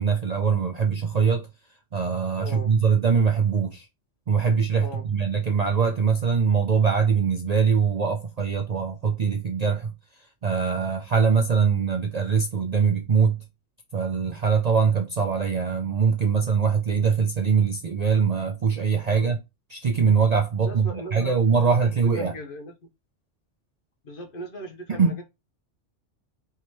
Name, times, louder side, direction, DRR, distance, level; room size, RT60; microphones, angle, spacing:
voice 1, 0.0-1.5 1.9-3.8 4.3-9.9 10.4-13.4 13.9-19.4 19.7-22.3 24.9-25.1, right 6 dB, 50° right, 0.5 m, -22 dB
voice 2, 2.4-2.7 4.8-5.0 19.1-19.3 20.6-21.4 21.8-22.7 24.0-25.2, equal, 50° left, 1.1 m, -38 dB
3.5 x 2.9 x 4.6 m
omnidirectional pair, 1.2 m